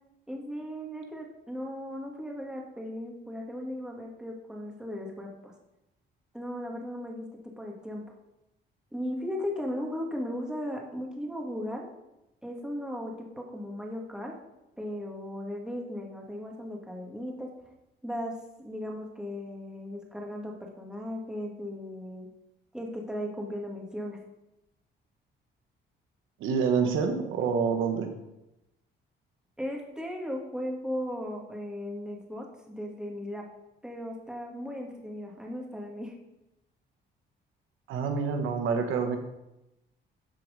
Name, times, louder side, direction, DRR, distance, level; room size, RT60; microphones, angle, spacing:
voice 1, 0.3-5.5 6.3-7.2 7.6-8.0 8.9-11.8 12.4-14.3 14.8-17.5 18.0-18.3 18.6-22.3 22.7-24.2 29.6-33.4 33.8-36.1, equal, 5° right, 0 dB, 2.1 m, -36 dB
voice 2, 26.4-28.1 37.9-39.2, right 5 dB, 90° right, 5 dB, 1.2 m, -27 dB
13.0 x 4.6 x 5.2 m, 0.92 s
cardioid pair, 90°, 20 cm